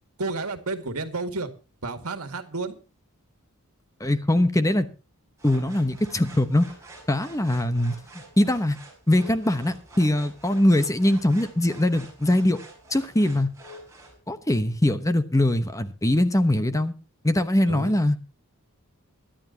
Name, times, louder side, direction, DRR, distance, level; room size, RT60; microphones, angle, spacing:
voice 1, 0.2-1.5 1.8-2.8 17.7-17.9, right 3 dB, 80° right, 8 dB, 2.0 m, -31 dB
voice 2, 4.0-4.9 5.4-6.7 7.1-8.8 9.1-12.6 12.9-13.5 14.3-16.9 17.2-18.2, left 1 dB, 15° left, 11 dB, 1.0 m, -22 dB
sound 1, 5.4-14.2, right 2 dB, 15° right, 5.4 m, -47 dB
23.0 x 11.5 x 2.8 m, 0.31 s
head